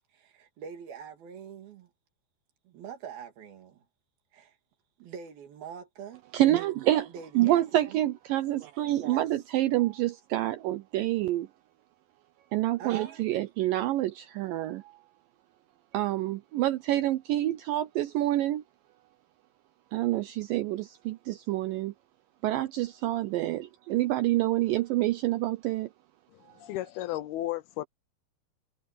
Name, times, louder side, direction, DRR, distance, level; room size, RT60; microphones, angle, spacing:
voice 1, 0.1-1.9 2.7-3.9 4.3-4.6 5.0-6.2 7.0-8.0 9.0-9.3 12.8-13.2, right 8 dB, 65° right, 3.9 m, -43 dB
voice 2, 6.3-7.1 7.4-11.5 12.5-14.9 15.9-18.6 19.9-21.9 22.4-25.9, right 15 dB, 90° right, 1.9 m, -27 dB
voice 3, 26.3-27.9, left 15 dB, 75° left, 2.5 m, -34 dB
omnidirectional pair, 4.8 m